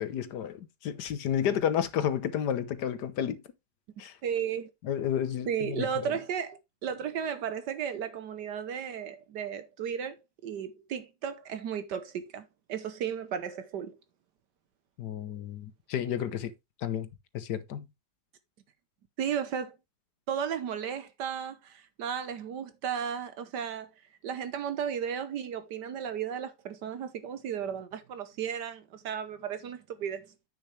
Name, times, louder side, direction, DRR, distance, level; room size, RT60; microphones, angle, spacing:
voice 1, 0.0-3.4 4.0-4.1 4.8-5.9 15.0-16.5 16.8-17.1 17.3-17.9, left 9 dB, 65° left, 1.5 m, -31 dB
voice 2, 4.2-4.7 5.5-14.0 19.2-19.8 20.3-23.9 24.2-30.3, right 8 dB, 70° right, 1.4 m, -34 dB
8.7 x 6.9 x 3.2 m
omnidirectional pair, 2.0 m